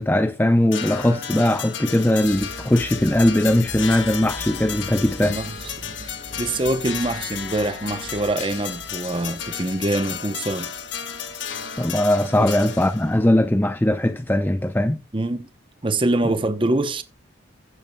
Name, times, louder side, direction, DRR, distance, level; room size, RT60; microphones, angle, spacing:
voice 1, 0.0-5.4 11.8-15.0, left 1 dB, 10° left, 0.5 m, -20 dB
sound 1, 0.7-13.2, left 8 dB, 70° left, 1.5 m, -33 dB
sound 2, 2.2-12.2, right 1 dB, 45° right, 1.5 m, -42 dB
voice 2, 5.2-6.1 6.4-10.7 12.4-12.5 15.1-15.5 15.8-17.0, right 2 dB, 25° right, 0.7 m, -25 dB
16.0 x 8.5 x 2.2 m
head